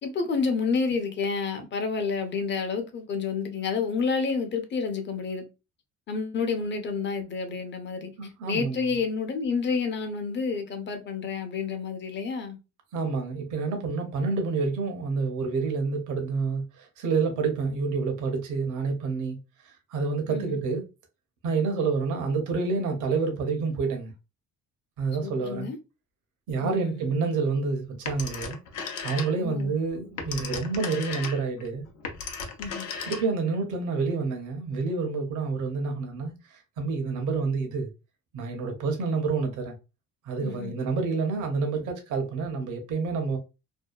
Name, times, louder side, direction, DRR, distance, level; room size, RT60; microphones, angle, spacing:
voice 1, 0.0-5.4 6.1-8.1 8.5-12.6 20.3-20.6 25.2-25.8 26.6-27.3 29.3-29.7 32.6-32.9 40.4-40.7, left 5 dB, 35° left, 0.6 m, -29 dB
voice 2, 8.2-9.0 12.9-19.4 19.6-20.8 21.4-24.1 25.0-25.7 26.5-28.6 29.0-31.8 33.0-37.9 38.3-39.7 40.3-43.4, right 4 dB, 80° right, 0.7 m, -28 dB
Telephone, 28.1-29.6 30.0-33.5, left 5 dB, 80° left, 0.6 m, -36 dB
2.7 x 2.2 x 2.2 m
cardioid pair, 90°, 30 cm